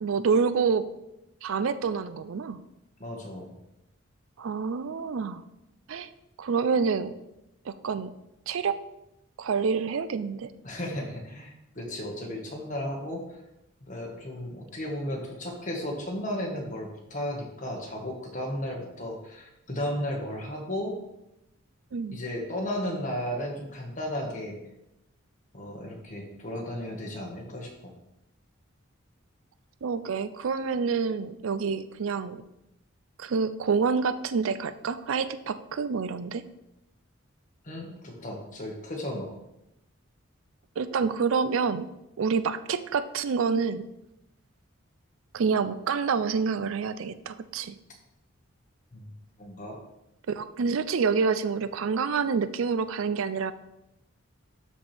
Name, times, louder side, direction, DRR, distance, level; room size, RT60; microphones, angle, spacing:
voice 1, 0.0-0.8 1.4-2.6 4.4-5.4 5.9-6.1 6.4-7.1 7.7-8.1 8.5-8.8 9.4-10.5 21.9-22.2 29.8-32.4 33.2-36.5 40.8-41.9 42.2-43.9 45.3-47.8 50.3-53.5, right 5 dB, 75° right, 13 dB, 0.4 m, -27 dB
voice 2, 3.0-3.5 10.6-13.4 13.8-21.0 22.1-24.5 25.5-27.9 37.6-39.3 48.9-49.1 49.4-49.8, left 1 dB, 40° left, 0 dB, 1.6 m, -34 dB
12.5 x 4.3 x 3.4 m, 0.88 s
head